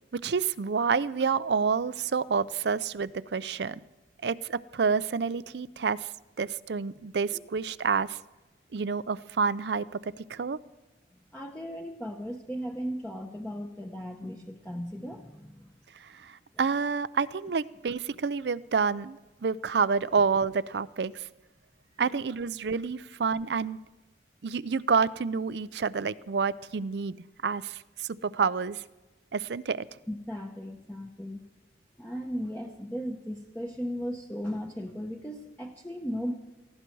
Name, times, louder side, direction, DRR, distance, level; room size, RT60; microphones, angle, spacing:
voice 1, 0.1-3.8 4.2-6.1 6.4-8.2 8.7-10.6 16.0-21.3 22.0-23.8 24.4-27.2 27.4-28.8 29.3-29.8, right 5 dB, 70° right, 17 dB, 0.5 m, -28 dB
voice 2, 11.3-15.7 22.0-22.1 30.1-31.5 32.0-36.3, equal, 10° left, 1 dB, 0.9 m, -36 dB
18.5 x 16.0 x 4.7 m, 1.1 s
head